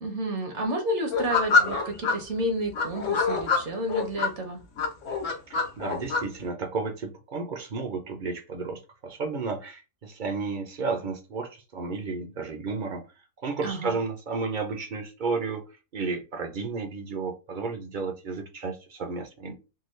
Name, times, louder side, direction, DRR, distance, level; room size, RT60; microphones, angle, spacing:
voice 1, 0.0-4.6 13.6-14.0, right 1 dB, 60° right, 1.1 m, -30 dB
sound 1, 1.1-2.1 2.7-4.3 4.8-6.2, left 4 dB, 65° left, 1.2 m, -25 dB
voice 2, 5.5-13.1 13.4-15.6 15.9-19.5, right 4 dB, 45° right, 0.7 m, -32 dB
3.8 x 2.3 x 3.1 m
omnidirectional pair, 1.4 m